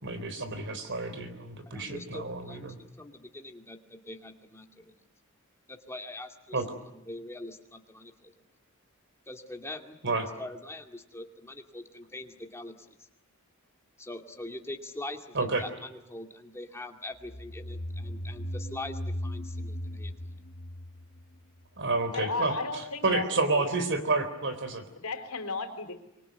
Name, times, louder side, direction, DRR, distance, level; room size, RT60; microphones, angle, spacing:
voice 1, 0.0-2.8 6.5-6.7 10.0-10.2 15.3-15.6 21.8-22.5 23.0-24.8, right 3 dB, 55° right, 10 dB, 4.0 m, -29 dB
voice 2, 1.7-4.9 5.7-6.6 6.9-8.4 9.3-10.0 10.4-13.0 14.0-20.4, left 2 dB, 10° left, 4 dB, 2.3 m, -43 dB
sound 1, 17.2-21.8, equal, 45° left, 1.9 m, -37 dB
voice 3, 22.1-23.2 23.5-24.1 25.0-26.0, left 3 dB, 85° left, 7 dB, 3.8 m, -35 dB
25.5 x 24.0 x 9.3 m, 0.88 s
head